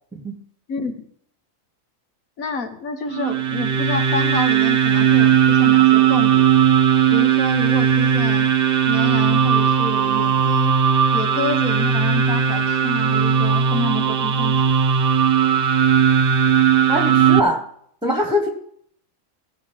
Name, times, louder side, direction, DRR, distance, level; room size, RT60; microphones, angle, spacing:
voice 1, 0.7-1.1 2.4-6.5 7.1-8.5 8.9-10.7 11.1-14.7, left 3 dB, 85° left, 6 dB, 1.7 m, -28 dB
sound 1, 3.1-17.4, right 8 dB, 50° right, 0.9 m, -17 dB
voice 2, 16.9-17.6 18.0-18.5, equal, 5° right, 2 dB, 1.1 m, -22 dB
15.5 x 5.4 x 7.4 m, 0.64 s
omnidirectional pair, 1.4 m